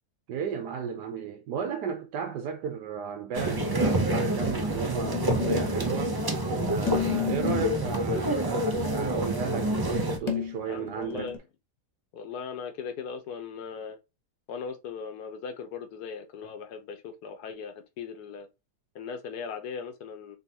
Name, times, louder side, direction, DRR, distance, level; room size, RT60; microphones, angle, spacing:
voice 1, 0.3-6.2 6.6-11.3, right 7 dB, 90° right, 1.4 m, -34 dB
sound 1, 3.3-10.2, right 1 dB, 30° right, 0.4 m, -28 dB
sound 2, 5.0-5.8 6.9-7.8 10.3-11.4, left 8 dB, 20° left, 1.3 m, -31 dB
voice 2, 10.7-11.4 12.1-14.0 14.5-18.5 18.9-20.4, left 6 dB, 75° left, 1.4 m, -38 dB
4.0 x 3.9 x 2.8 m
omnidirectional pair, 1.7 m